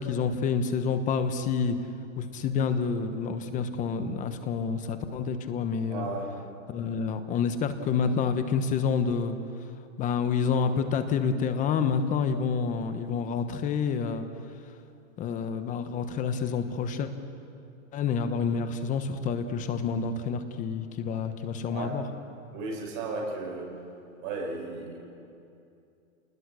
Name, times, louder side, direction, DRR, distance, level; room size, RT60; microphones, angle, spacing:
voice 1, 0.0-1.8 2.2-6.1 6.7-9.4 10.0-14.3 15.2-17.1 17.9-22.0, left 6 dB, 20° left, 9 dB, 1.1 m, -28 dB
voice 2, 5.9-6.3 21.7-21.9 22.5-23.7 24.2-25.0, right 3 dB, 40° right, -1 dB, 6.4 m, -34 dB
27.5 x 20.5 x 6.3 m, 2.6 s
hypercardioid pair, 150°, 40 cm